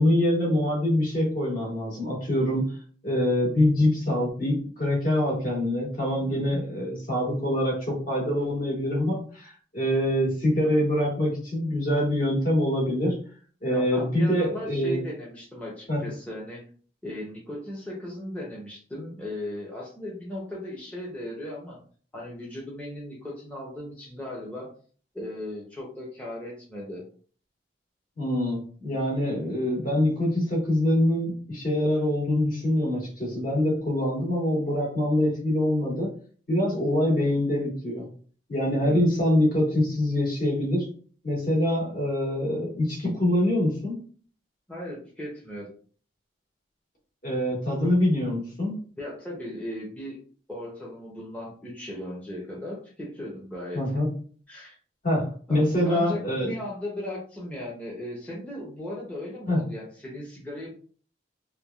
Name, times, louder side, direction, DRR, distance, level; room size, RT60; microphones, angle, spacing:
voice 1, 0.0-2.7 3.0-13.2 13.6-15.0 15.9-16.0 28.2-36.1 36.5-38.0 38.5-40.9 41.2-44.0 47.2-48.8 53.7-54.1 55.0-56.5 59.5-59.6, left 1 dB, 50° left, -4 dB, 1.3 m, -25 dB
voice 2, 6.2-6.6 13.7-16.7 17.0-21.8 22.1-24.7 25.1-27.0 38.8-39.1 44.7-45.7 49.0-50.2 50.5-53.8 54.5-54.8 55.5-60.7, left 1 dB, 10° left, -5 dB, 0.6 m, -37 dB
3.2 x 2.3 x 2.3 m, 0.43 s
head